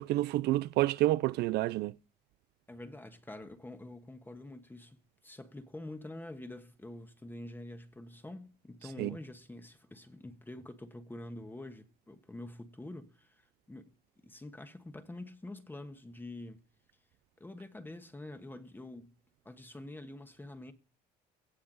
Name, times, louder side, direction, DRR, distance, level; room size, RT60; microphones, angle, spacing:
voice 1, 0.0-2.0 9.0-9.1, right 16 dB, 75° right, 0.4 m, -29 dB
voice 2, 2.7-5.0 5.2-13.9 14.2-16.6 17.4-19.1 19.4-20.7, left 1 dB, 10° left, 1.3 m, -46 dB
17.0 x 5.8 x 3.9 m
cardioid pair, 110°, 17 cm